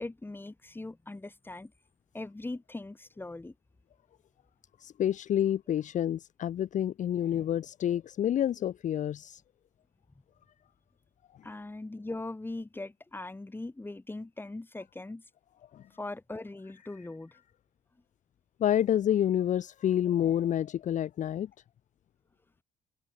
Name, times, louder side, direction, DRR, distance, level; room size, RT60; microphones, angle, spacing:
voice 1, 0.0-1.7 2.1-3.5 11.4-15.2 16.0-17.4, left 2 dB, 10° left, 6.6 m, -40 dB
voice 2, 4.8-9.4 15.7-15.9 18.6-21.5, left 10 dB, 45° left, 0.7 m, -28 dB
open air
cardioid pair, 110°, 17 cm